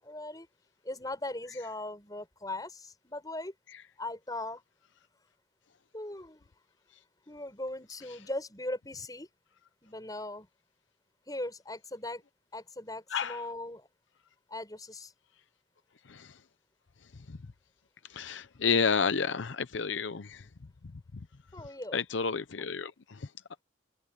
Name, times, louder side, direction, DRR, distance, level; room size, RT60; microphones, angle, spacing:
voice 1, 0.0-0.5 0.8-3.5 4.0-4.6 5.9-6.5 7.3-9.3 9.8-10.5 11.3-12.2 12.5-13.9 14.5-15.1 21.5-22.0, left 1 dB, 20° left, 6.8 m, -39 dB
voice 2, 18.1-20.4 21.9-22.9, left 5 dB, 75° left, 0.7 m, -30 dB
head